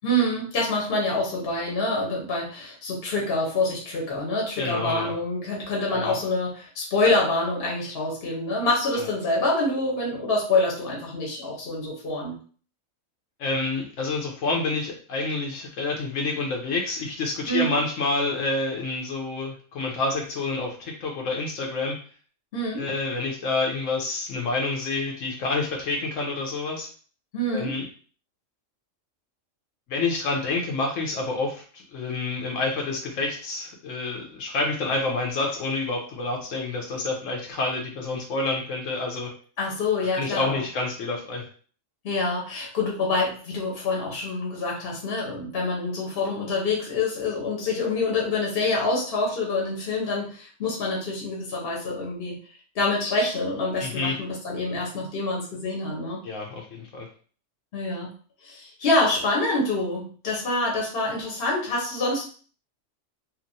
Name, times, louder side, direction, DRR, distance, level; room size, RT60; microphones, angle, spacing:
voice 1, 0.0-12.4 17.5-17.7 22.5-22.9 27.3-27.7 39.6-40.6 42.0-52.4 52.7-56.2 57.7-58.1 58.4-62.3, left 2 dB, 55° left, -2 dB, 0.9 m, -26 dB
voice 2, 4.6-5.2 5.9-6.1 9.0-9.1 13.4-22.0 22.8-26.9 27.5-27.8 29.9-39.3 40.1-41.5 53.8-54.1 56.2-57.1, left 3 dB, 75° left, 1 dB, 1.0 m, -28 dB
2.8 x 2.4 x 2.6 m, 0.42 s
omnidirectional pair, 1.3 m